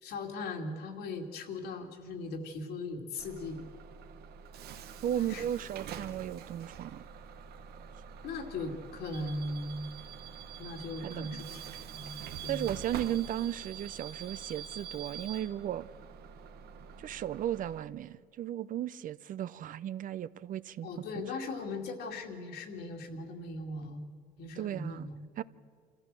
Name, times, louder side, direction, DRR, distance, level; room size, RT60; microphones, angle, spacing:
voice 1, 0.0-3.6 5.2-5.4 8.2-9.9 10.6-12.7 20.8-24.1 24.4-25.3, left 2 dB, 75° left, 2.5 m, -39 dB
Bus / Alarm, 3.2-17.8, right 7 dB, 70° right, 1.0 m, -46 dB
voice 2, 5.0-7.0 11.0-11.4 12.5-15.9 17.0-20.9 24.6-25.1 25.4-25.5, right 11 dB, 55° right, 0.5 m, -35 dB
27.0 x 14.5 x 7.6 m
cardioid pair, 110°, 17 cm